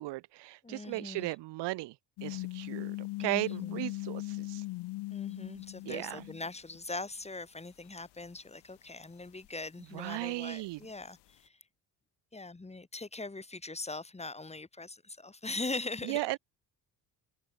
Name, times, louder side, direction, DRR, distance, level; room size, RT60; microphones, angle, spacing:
voice 1, 0.0-1.9 2.2-4.6 5.8-6.3 9.9-10.8 16.0-16.4, right 19 dB, 80° right, 0.9 m, -36 dB
voice 2, 0.6-1.3 3.2-3.8 5.1-11.2 12.3-16.2, left 3 dB, 15° left, 1.8 m, -41 dB
sound 1, 2.2-6.5 6.7-6.8 9.4-9.5, left 20 dB, 75° left, 0.6 m, -39 dB
cardioid pair, 85°, 41 cm